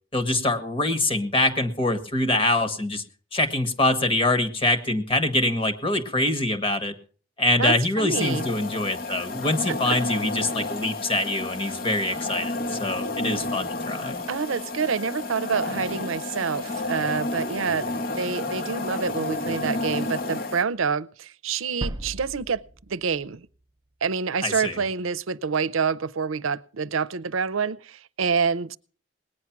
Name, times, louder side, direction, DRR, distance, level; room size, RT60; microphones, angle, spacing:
voice 1, 0.1-3.0 3.3-6.9 7.4-14.2 24.4-24.8, left 2 dB, 25° left, 1.5 m, -24 dB
voice 2, 7.6-8.4 9.7-10.0 14.3-23.5 24.0-28.8, right 5 dB, 85° right, 0.6 m, -27 dB
sound 1, 8.1-20.6, left 2 dB, 45° left, 1.2 m, -31 dB
sound 2, 21.8-23.6 23.9-24.0, right 1 dB, 20° right, 0.7 m, -36 dB
19.0 x 9.7 x 6.0 m
head